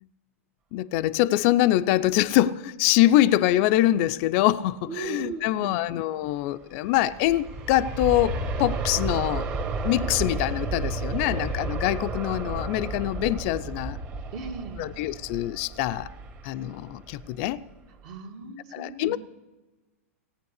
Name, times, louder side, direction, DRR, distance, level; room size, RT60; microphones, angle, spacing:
voice 1, 0.7-9.5 9.8-14.0 14.8-16.1 16.4-17.6 18.7-19.2, left 14 dB, 50° left, 0.5 m, -24 dB
voice 2, 4.9-5.8 14.3-14.9 18.0-19.2, right 5 dB, 50° right, 1.8 m, -37 dB
Aircraft, 6.7-17.6 18.0-18.1, right 3 dB, 30° right, 1.7 m, -32 dB
17.0 x 8.8 x 6.6 m
hypercardioid pair, 110°, 8 cm